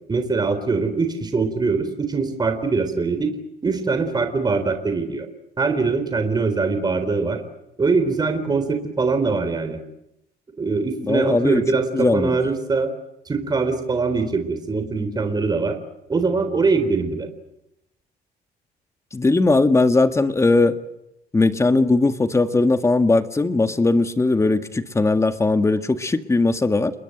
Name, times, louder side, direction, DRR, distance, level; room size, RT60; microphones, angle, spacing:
voice 1, 0.1-3.3 3.6-5.3 5.6-7.4 7.8-9.8 10.6-12.9 13.3-15.8 16.1-17.3, right 4 dB, 25° right, 8 dB, 3.8 m, -22 dB
voice 2, 11.0-12.4 19.1-20.8 21.3-26.9, left 3 dB, 15° left, 9 dB, 1.8 m, -19 dB
29.5 x 21.5 x 7.9 m, 0.84 s
cardioid pair, 110°, 17 cm